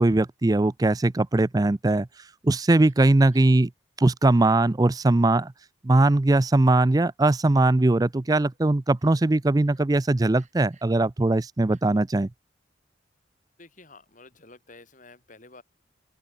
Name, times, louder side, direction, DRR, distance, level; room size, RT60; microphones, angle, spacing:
voice 1, 0.0-2.1 2.4-3.7 4.0-5.5 5.8-12.3, right 2 dB, 20° right, 0.4 m, -20 dB
Crying sobbing, 2.8-3.0 3.3-3.6 4.4-4.6 5.2-5.4 6.3-7.0 7.6-7.7 8.3-8.6 9.0-9.2 9.6-9.8 10.3-11.0 11.7-11.8, right 5 dB, 40° right, 4.8 m, -60 dB
voice 2, 13.6-15.6, left 3 dB, 40° left, 4.1 m, -50 dB
open air
head